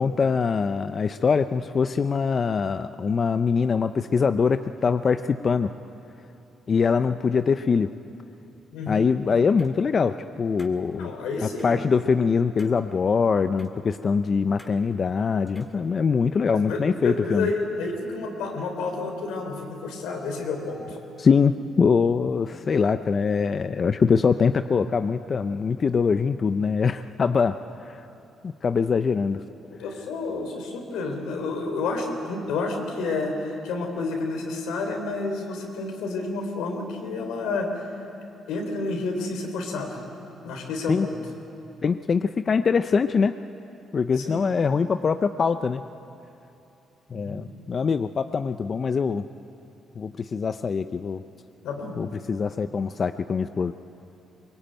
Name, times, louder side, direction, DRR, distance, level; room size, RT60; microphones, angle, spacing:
voice 1, 0.0-5.7 6.7-7.9 8.9-11.1 11.4-17.5 21.2-27.5 27.9-28.0 28.4-29.4 40.9-41.1 41.8-43.3 43.9-45.8 47.1-49.2 50.0-51.2 52.0-53.7, left 5 dB, 45° left, 10 dB, 0.6 m, -23 dB
voice 2, 8.7-9.1 11.0-12.0 16.5-21.0 29.7-37.9 38.5-40.0 40.4-41.2 44.2-44.4 47.1-47.4 51.6-52.0, left 3 dB, 90° left, 3 dB, 3.9 m, -30 dB
sound 1, 9.6-9.7 10.6-10.8 11.6-11.7 12.6-12.8 13.6-13.7 14.6-14.8 15.5-15.8, left 1 dB, 10° left, 2.4 m, -48 dB
23.0 x 21.5 x 9.1 m, 2.9 s
cardioid pair, 90°, 0 cm